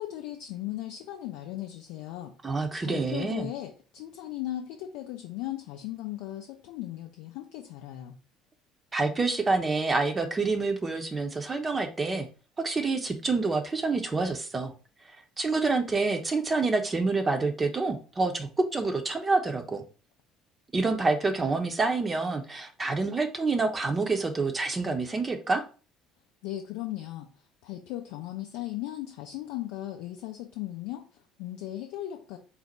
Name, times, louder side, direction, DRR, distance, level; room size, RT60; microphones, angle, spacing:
voice 1, 0.0-2.3 2.8-8.2 26.4-27.3 27.6-32.4, left 14 dB, 65° left, 2 dB, 0.4 m, -37 dB
voice 2, 2.4-3.5 8.9-12.3 12.6-14.7 15.1-19.8 20.7-25.7, right 3 dB, 25° right, 4 dB, 0.6 m, -27 dB
4.0 x 2.1 x 4.2 m, 0.36 s
figure-of-eight pair, 55°, 0 cm